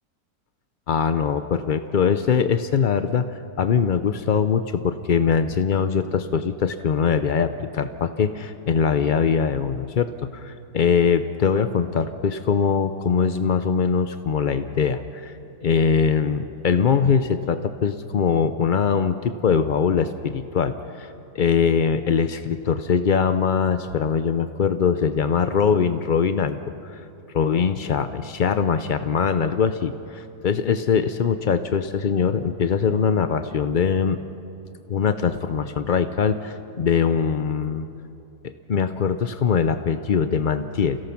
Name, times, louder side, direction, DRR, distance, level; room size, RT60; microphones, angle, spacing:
voice 1, 0.9-26.6 26.8-27.0 27.3-34.2 34.9-37.9 38.4-41.0, left 6 dB, 75° left, 10 dB, 0.4 m, -22 dB
28.5 x 17.0 x 5.9 m, 2.8 s
omnidirectional pair, 1.7 m